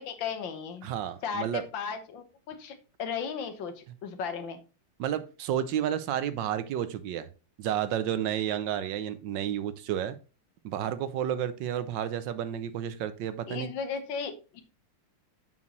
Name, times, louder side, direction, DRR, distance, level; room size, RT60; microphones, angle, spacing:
voice 1, 0.0-0.9 1.2-4.6 13.5-14.6, left 6 dB, 80° left, 8 dB, 1.8 m, -36 dB
voice 2, 0.8-1.6 5.0-7.3 7.6-10.2 10.6-13.7, right 10 dB, 75° right, 13 dB, 1.4 m, -31 dB
7.3 x 6.1 x 3.1 m, 0.33 s
omnidirectional pair, 2.0 m